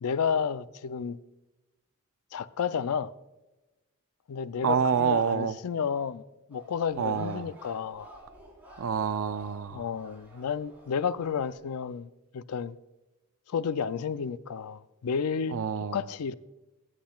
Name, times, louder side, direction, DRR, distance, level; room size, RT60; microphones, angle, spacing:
voice 1, 0.0-1.2 2.3-3.1 4.3-6.2 6.5-8.1 9.7-12.8 13.5-15.6 15.9-16.3, left 6 dB, 85° left, 0.4 m, -31 dB
voice 2, 4.6-5.6 7.0-7.5 8.8-9.9 15.5-16.0, right 6 dB, 65° right, 0.5 m, -27 dB
sound 1, 6.5-11.6, equal, 10° right, 3.9 m, -52 dB
18.0 x 7.4 x 2.3 m
head